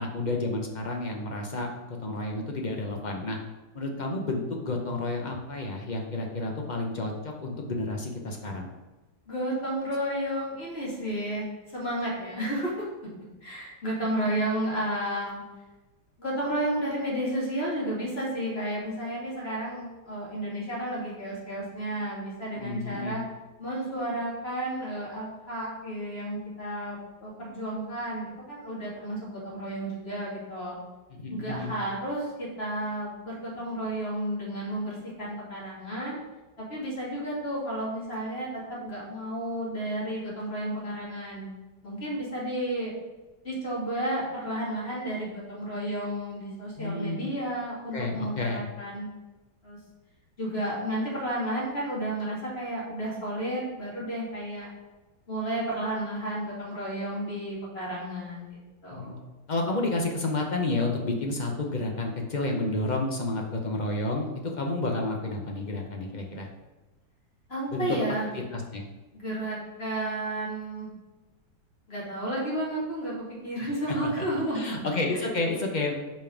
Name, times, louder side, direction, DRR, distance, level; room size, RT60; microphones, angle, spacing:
voice 1, 0.0-3.4 3.7-8.7 22.6-23.2 31.1-31.8 46.8-47.3 47.9-48.7 58.9-59.1 59.5-64.3 64.6-66.5 67.7-67.9 68.3-68.8 73.6-75.9, left 2 dB, 55° left, 1 dB, 0.5 m, -30 dB
voice 2, 9.3-12.7 13.4-15.4 16.2-23.2 23.6-30.8 31.3-36.2 36.7-41.5 41.8-42.9 43.4-49.1 49.6-49.8 50.4-54.7 55.3-59.2 67.5-68.3 69.1-70.9 71.9-73.1 73.4-74.8 75.1-75.3, right 1 dB, 35° left, -6 dB, 2.5 m, -32 dB
5.3 x 5.2 x 5.1 m, 1.2 s
omnidirectional pair, 1.9 m